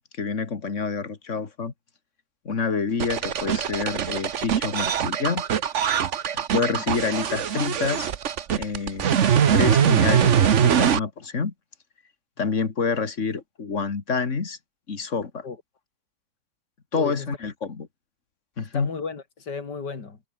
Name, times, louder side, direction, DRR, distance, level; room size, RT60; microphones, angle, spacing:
voice 1, 0.0-1.7 2.4-5.4 6.3-8.1 8.6-9.1 9.5-11.5 12.4-14.6 14.9-15.5 16.9-17.9 18.6-18.9, left 5 dB, 45° left, 2.4 m, -27 dB
sound 1, 3.0-11.0, right 8 dB, 50° right, 1.2 m, -22 dB
voice 2, 16.9-17.4 18.6-20.2, left 5 dB, 75° left, 3.4 m, -35 dB
omnidirectional pair, 1.9 m